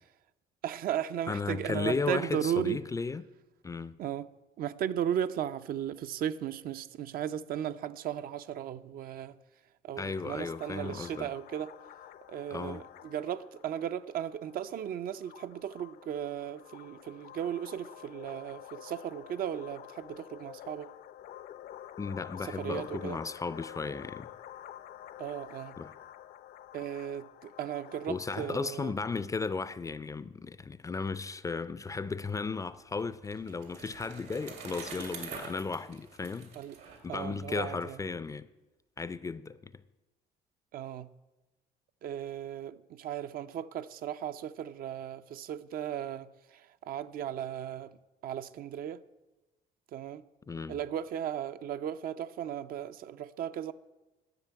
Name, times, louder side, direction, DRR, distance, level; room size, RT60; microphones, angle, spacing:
voice 1, 0.6-2.8 4.0-4.3 4.6-9.4 9.8-11.7 12.3-20.9 22.4-23.2 25.2-25.8 26.7-28.9 36.6-36.8 37.1-38.0 40.7-41.1 42.0-48.0 48.2-49.0 49.9-50.2 50.7-53.7, right 10 dB, 60° right, 0.5 m, -36 dB
voice 2, 1.3-3.3 3.6-4.0 10.0-11.3 12.5-12.8 22.0-24.3 25.8-25.9 28.1-36.5 37.0-38.5 39.0-39.8 50.5-50.8, left 4 dB, 20° left, 0.4 m, -35 dB
sound 1, 10.0-29.2, left 12 dB, 65° left, 0.5 m, -49 dB
Bicycle, 32.7-37.8, right 5 dB, 80° right, 2.4 m, -46 dB
11.0 x 6.8 x 8.1 m
cardioid pair, 110°, 17 cm